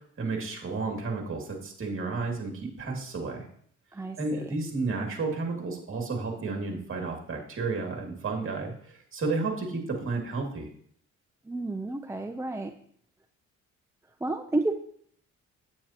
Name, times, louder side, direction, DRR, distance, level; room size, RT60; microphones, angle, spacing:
voice 1, 0.2-3.5 4.2-10.7, right 3 dB, 45° right, 1 dB, 2.4 m, -32 dB
voice 2, 11.5-12.7 14.2-14.7, right 2 dB, 10° right, 6 dB, 0.5 m, -30 dB
9.0 x 8.7 x 2.9 m, 0.62 s
cardioid pair, 90°, 30 cm